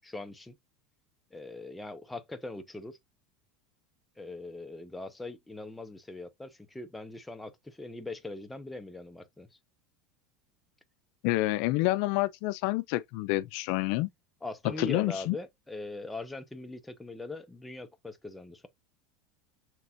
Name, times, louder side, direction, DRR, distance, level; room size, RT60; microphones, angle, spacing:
voice 1, 0.0-0.6 1.3-3.0 4.2-9.5 14.4-18.7, left 2 dB, 5° left, 0.7 m, -41 dB
voice 2, 11.2-14.1 14.8-15.4, left 18 dB, 65° left, 0.4 m, -28 dB
5.8 x 3.4 x 2.6 m
supercardioid pair, 135°, 0 cm